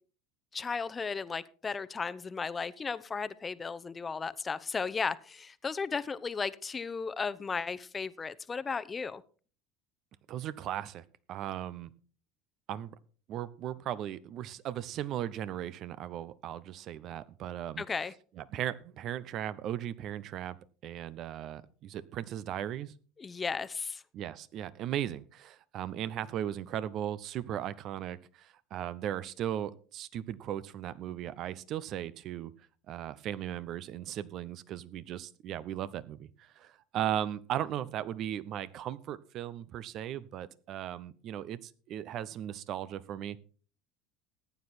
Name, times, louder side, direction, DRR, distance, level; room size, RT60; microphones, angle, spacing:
voice 1, 0.5-9.2 17.8-18.1 23.2-24.0, left 5 dB, 25° left, 0.8 m, -35 dB
voice 2, 10.3-11.9 12.7-12.9 13.3-17.8 18.4-20.6 20.8-22.9 24.1-32.5 32.9-43.4, right 11 dB, 50° right, 0.8 m, -37 dB
14.5 x 9.5 x 4.3 m
hypercardioid pair, 75°, 0 cm